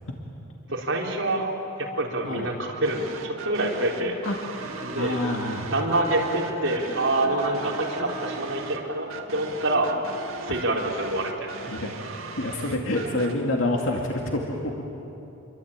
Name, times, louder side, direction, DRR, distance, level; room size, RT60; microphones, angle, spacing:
voice 1, 0.7-1.5 1.8-4.2 4.8-5.2 5.7-9.9 10.4-11.9, right 2 dB, 60° right, -2 dB, 4.4 m, -26 dB
sound 1, 2.8-13.3, right 4 dB, 80° right, 2.3 m, -39 dB
Bowed string instrument, 4.6-8.7, right 1 dB, 15° right, 1.4 m, -41 dB
voice 2, 5.0-5.7 11.7-11.9 12.4-14.6, left 1 dB, 70° left, 0 dB, 2.3 m, -27 dB
28.5 x 23.0 x 8.9 m, 3.0 s
head